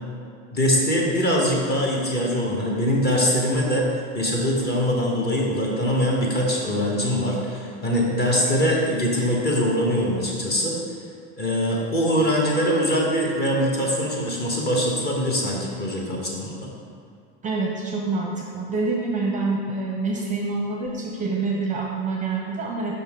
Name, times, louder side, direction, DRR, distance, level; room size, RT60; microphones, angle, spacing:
voice 1, 0.5-3.9 4.1-10.8 11.4-16.7, equal, 30° left, -2 dB, 1.3 m, -23 dB
voice 2, 17.4-22.9, right 3 dB, 20° right, -1 dB, 0.6 m, -26 dB
5.5 x 5.4 x 3.7 m, 2.3 s
supercardioid pair, 115°, 35 cm